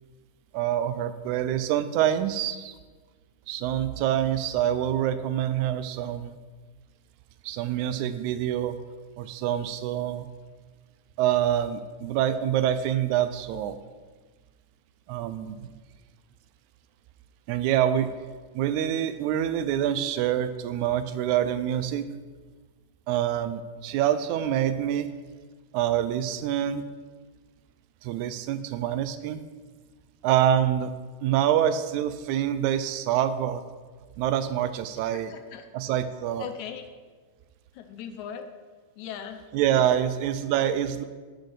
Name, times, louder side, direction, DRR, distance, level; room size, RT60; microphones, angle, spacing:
voice 1, 0.5-2.8 3.5-6.4 7.4-8.8 9.2-10.3 11.2-13.8 15.1-15.7 17.5-18.1 18.5-22.1 23.1-25.1 25.7-26.9 28.0-29.4 30.2-30.9 31.2-33.6 34.2-35.3 35.7-36.5 39.5-41.0, right 10 dB, 85° right, 12 dB, 2.0 m, -26 dB
voice 2, 35.1-35.7 36.4-36.8 37.7-38.5 39.0-39.4, left 9 dB, 85° left, 7 dB, 2.1 m, -38 dB
8.6 x 6.2 x 4.8 m, 1.4 s
omnidirectional pair, 3.3 m